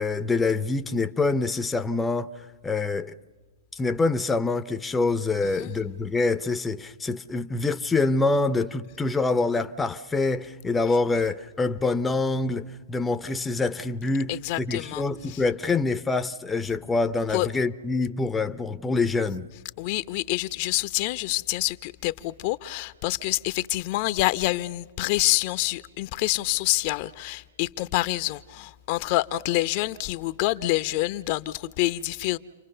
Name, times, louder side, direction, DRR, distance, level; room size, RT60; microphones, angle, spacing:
voice 1, 0.0-2.3 2.6-3.1 3.7-19.5, left 3 dB, 10° left, 0.7 m, -25 dB
voice 2, 14.3-15.0 17.3-17.5 19.8-32.4, left 18 dB, 45° left, 0.7 m, -27 dB
30.0 x 24.0 x 6.8 m
hypercardioid pair, 130°, 0 cm